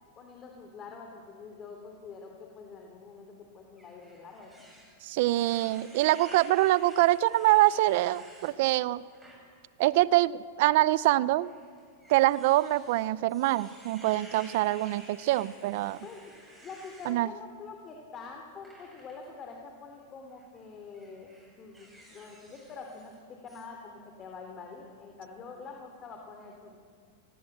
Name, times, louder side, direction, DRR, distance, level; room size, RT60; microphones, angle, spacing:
voice 1, 0.2-4.6 16.0-16.3 16.6-21.3 21.6-26.8, left 4 dB, 30° left, 2 dB, 3.1 m, -46 dB
sound 1, 3.8-8.5 9.0-9.4 9.8-10.0 11.0-17.2 18.6-19.3 20.2-20.5 20.9-23.2 23.5-23.6, right 1 dB, 5° right, 7.6 m, -53 dB
voice 2, 5.0-9.0 9.8-11.5 12.1-16.0 17.1-17.3, right 17 dB, 60° right, 19 dB, 0.7 m, -25 dB
29.0 x 19.5 x 8.0 m, 2.2 s
hypercardioid pair, 130°, 0 cm